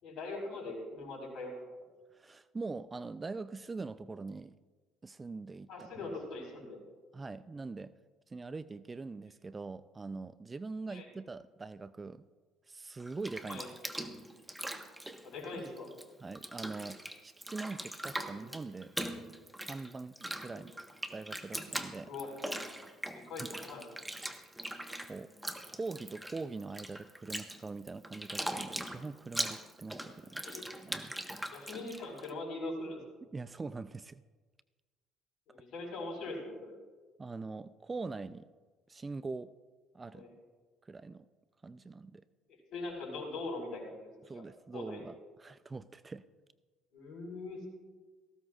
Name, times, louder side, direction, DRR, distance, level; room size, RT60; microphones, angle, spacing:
voice 1, 0.0-1.5 5.7-6.8 10.9-11.1 13.5-13.7 15.2-15.9 18.2-18.4 20.5-20.6 22.0-22.3 23.1-23.9 30.4-30.7 31.5-33.0 35.5-36.7 40.1-40.3 42.7-44.4 44.7-45.1 46.9-47.7, left 2 dB, 60° left, 1 dB, 4.9 m, -42 dB
voice 2, 2.1-4.6 5.0-5.7 7.1-7.9 8.3-12.3 12.7-13.6 16.2-18.9 19.7-20.7 21.1-22.1 25.1-25.3 25.7-31.1 33.3-34.2 37.2-38.5 38.9-39.5 39.9-40.3 40.9-41.3 41.6-42.2 44.2-46.2, right 3 dB, 25° right, 15 dB, 0.5 m, -43 dB
Bathtub (filling or washing), 13.0-16.0 16.3-32.3, right 1 dB, 5° right, 1.4 m, -41 dB
18.0 x 15.5 x 2.5 m, 1.3 s
hypercardioid pair, 60°, 0 cm